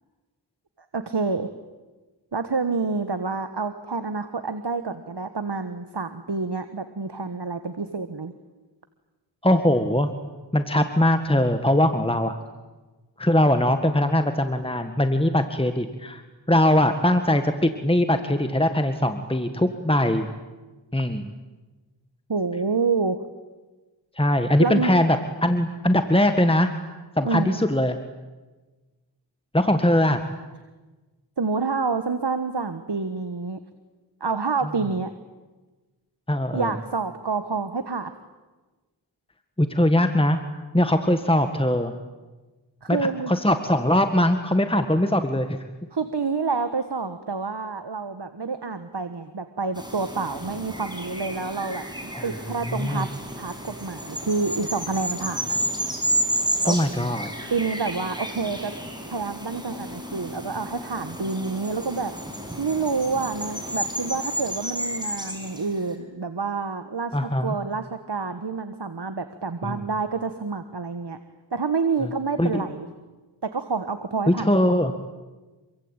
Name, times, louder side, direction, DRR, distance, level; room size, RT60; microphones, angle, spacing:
voice 1, 0.9-1.5 2.3-8.3 22.3-23.2 24.6-24.9 27.2-27.6 31.4-33.6 34.2-35.1 36.5-38.1 42.8-43.3 45.9-53.1 53.4-55.6 56.6-56.8 57.5-58.7 59.1-62.1 62.6-71.2 71.5-72.9 73.4-74.5, right 4 dB, 60° right, 9 dB, 1.5 m, -28 dB
voice 2, 9.4-10.1 10.5-12.3 13.2-16.2 16.5-20.3 20.9-21.3 24.1-26.7 27.2-28.0 29.5-30.2 36.3-36.7 39.6-40.4 40.7-41.9 42.9-43.0 43.3-45.6 52.1-52.3 52.7-53.1 56.6-57.3 67.1-67.5 69.6-69.8 72.0-72.1 72.4-72.6 74.3-74.9, left 1 dB, 10° left, 8 dB, 1.7 m, -21 dB
sound 1, 49.8-65.9, equal, 10° right, 6.3 m, -31 dB
27.0 x 24.0 x 9.1 m, 1.2 s
wide cardioid pair, 45°, 45 cm